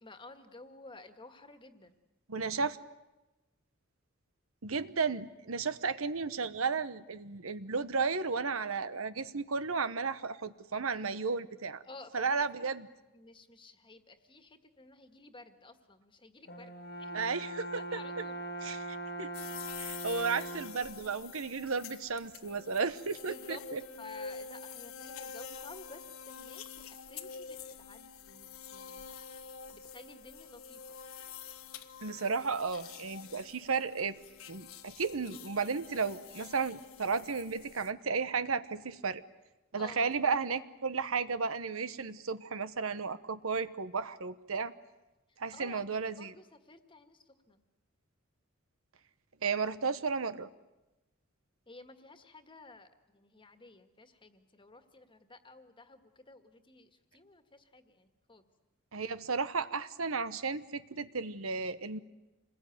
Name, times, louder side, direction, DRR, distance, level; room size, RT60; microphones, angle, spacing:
voice 1, 0.0-1.9 11.8-12.7 13.1-16.7 17.0-17.2 17.8-18.4 23.3-23.6 24.0-29.0 29.3-31.0 39.8-40.1 45.3-47.6 51.7-58.4, left 3 dB, 25° left, 8 dB, 1.8 m, -53 dB
voice 2, 2.3-2.8 4.6-11.8 12.1-12.9 17.1-18.0 18.6-19.3 19.8-23.8 32.0-34.2 34.5-39.2 39.7-44.7 45.4-46.3 49.4-50.5 58.9-62.0, right 5 dB, 85° right, 13 dB, 1.1 m, -34 dB
Brass instrument, 16.5-20.9, right 1 dB, 50° left, 1.8 m, -41 dB
sound 1, 19.3-37.9, left 6 dB, 85° left, 1.3 m, -47 dB
27.0 x 21.0 x 9.4 m, 1.0 s
head